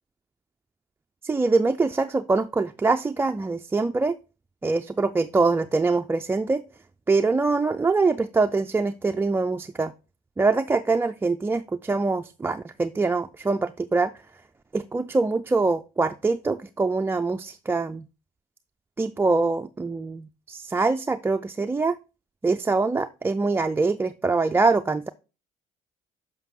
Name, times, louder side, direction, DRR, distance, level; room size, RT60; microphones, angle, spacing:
voice 1, 1.2-4.2 4.6-6.6 7.1-9.9 10.4-14.1 14.7-18.0 19.0-22.0 22.4-25.1, right 3 dB, 15° right, 6 dB, 0.3 m, -24 dB
7.0 x 5.3 x 3.7 m, 0.32 s
cardioid pair, 90°, 16 cm